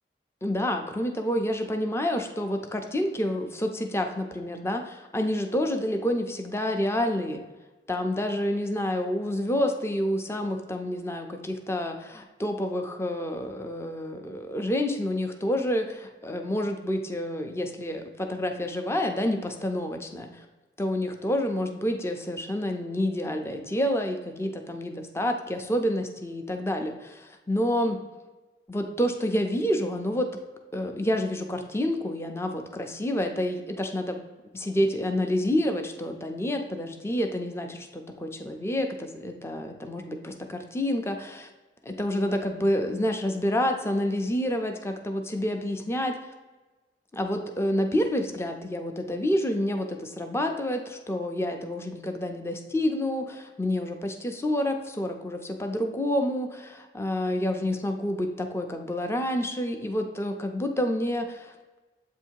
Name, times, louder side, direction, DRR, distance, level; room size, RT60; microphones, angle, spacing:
voice 1, 0.4-7.4 7.9-20.5 20.8-28.0 28.7-30.3 30.7-34.2 34.5-41.5 41.9-46.1 47.1-61.6, left 1 dB, 15° left, 5 dB, 0.5 m, -28 dB
7.8 x 2.7 x 4.5 m, 1.2 s
head